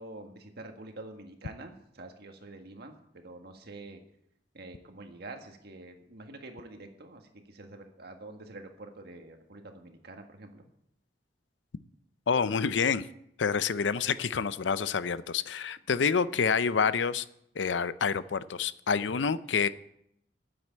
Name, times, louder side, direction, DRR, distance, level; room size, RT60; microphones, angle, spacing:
voice 1, 0.0-4.0 4.5-10.7, right 2 dB, 60° right, 5 dB, 1.7 m, -46 dB
voice 2, 12.3-13.1 13.4-17.3 17.6-19.7, left 6 dB, 90° left, 15 dB, 0.6 m, -28 dB
9.7 x 7.8 x 8.7 m, 0.76 s
head